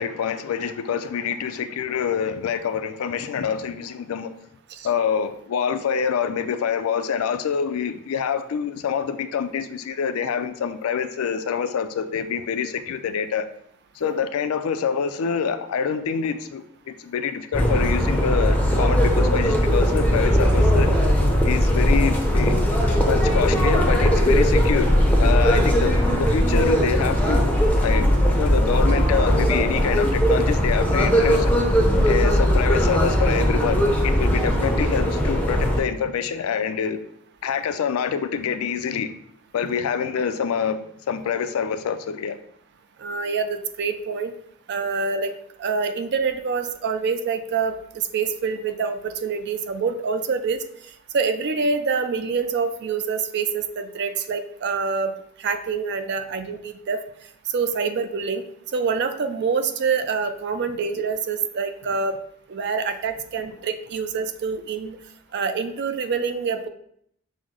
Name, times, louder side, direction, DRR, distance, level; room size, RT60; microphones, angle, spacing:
voice 1, 0.0-4.3 4.8-13.5 14.0-20.9 21.4-24.9 25.2-27.5 27.8-31.5 32.0-37.0 37.4-39.1 39.5-42.4, left 7 dB, 70° left, 10 dB, 0.3 m, -26 dB
sound 1, 17.5-35.8, equal, 5° left, 0.5 m, -19 dB
voice 2, 43.0-44.3 44.7-45.3 45.6-50.6 51.1-55.1 55.4-57.0 57.5-58.4 58.7-62.2 62.5-65.0 65.3-66.7, right 5 dB, 50° right, 8 dB, 0.4 m, -26 dB
6.1 x 2.0 x 3.7 m, 0.69 s
head